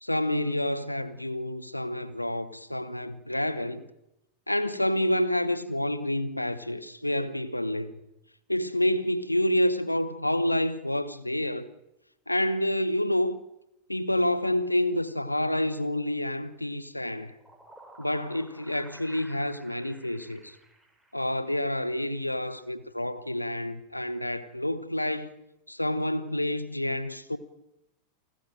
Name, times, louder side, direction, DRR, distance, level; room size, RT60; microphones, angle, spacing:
voice 1, 0.0-3.8 4.5-7.9 8.5-11.7 12.3-13.4 13.9-17.3 18.0-20.6 21.1-25.3 25.7-27.4, left 1 dB, 85° left, 1.3 m, -28 dB
sound 1, 17.2-21.6, right 1 dB, 5° right, 4.7 m, -53 dB
28.5 x 14.0 x 9.0 m
figure-of-eight pair, 90°, 0 cm